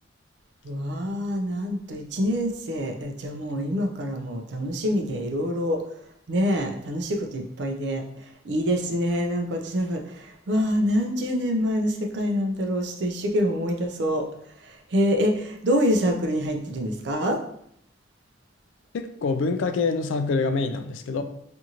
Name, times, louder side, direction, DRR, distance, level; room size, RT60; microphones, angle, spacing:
voice 1, 0.6-5.8 6.3-8.0 8.4-14.3 14.6-17.4, equal, 60° right, 3 dB, 0.4 m, -26 dB
voice 2, 18.9-21.2, left 4 dB, 80° left, 8 dB, 0.3 m, -25 dB
2.5 x 2.5 x 2.8 m, 0.70 s
head